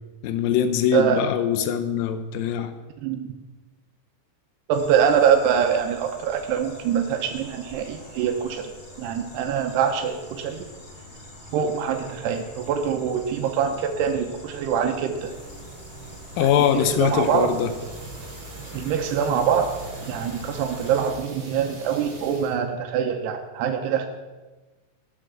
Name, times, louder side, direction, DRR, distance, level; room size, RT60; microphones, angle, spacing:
voice 1, 0.2-2.7 16.4-17.7, left 9 dB, 75° left, 10 dB, 2.1 m, -22 dB
sound 1, 4.7-21.1, equal, 25° left, 1.0 m, -44 dB
voice 2, 4.7-8.7 9.0-10.7 11.5-15.3 16.4-17.5 18.7-19.7 20.1-24.1, right 8 dB, 85° right, 5 dB, 2.9 m, -24 dB
sound 2, 15.1-22.6, right 4 dB, 55° right, 4.0 m, -42 dB
14.0 x 7.7 x 7.6 m, 1.2 s
omnidirectional pair, 4.7 m